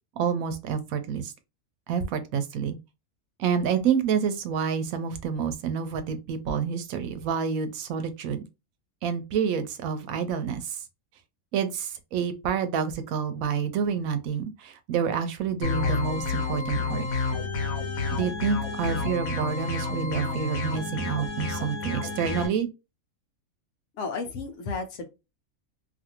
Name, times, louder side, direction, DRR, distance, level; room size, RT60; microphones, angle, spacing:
voice 1, 0.2-1.3 1.9-2.8 3.4-8.4 9.0-10.8 11.5-17.1 18.1-22.7, right 7 dB, 90° right, 1.0 m, -28 dB
sound 1, 15.6-22.5, left 3 dB, 85° left, 1.2 m, -30 dB
voice 2, 24.0-25.1, left 4 dB, 70° left, 0.9 m, -33 dB
2.6 x 2.5 x 2.8 m
omnidirectional pair, 1.4 m